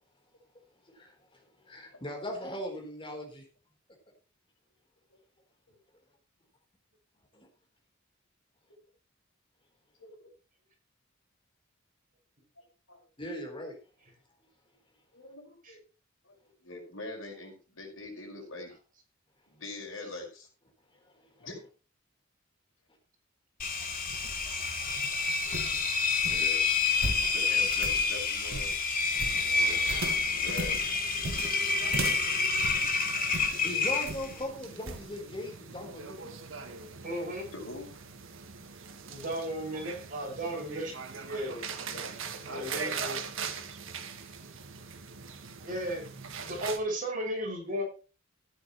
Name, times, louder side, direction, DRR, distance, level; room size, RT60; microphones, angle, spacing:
voice 1, 1.7-3.4 7.3-7.5 13.2-13.8 21.4-21.5 29.4-29.5 30.2-30.4 31.4-31.6 32.1-32.2 32.6-32.7 33.1-33.2 33.6-36.4, left 1 dB, 25° left, 3 dB, 4.2 m, -39 dB
voice 2, 10.0-10.3 12.6-13.1 15.1-15.8 16.2-16.3 16.6-18.7 19.5-20.5 21.4-21.6 25.4-25.5 26.3-26.6 27.3-28.7 29.5-29.8 30.2-30.9 37.5-37.9 41.9-42.0 42.5-42.9, left 2 dB, 75° left, 2 dB, 5.5 m, -43 dB
Engine, 23.6-34.4, left 4 dB, 45° left, 2.8 m, -28 dB
sound 1, 23.9-33.6 34.1-34.4 34.9-35.1, right 2 dB, 85° right, 1.7 m, -39 dB
sound 2, 29.1-46.8, right 5 dB, 70° right, 1.8 m, -42 dB
voice 3, 37.0-37.4 39.1-40.9 41.2-41.6 42.5-43.2 45.6-46.1 46.4-47.8, right 1 dB, 40° right, 0 dB, 6.6 m, -34 dB
14.5 x 10.5 x 3.2 m, 0.34 s
head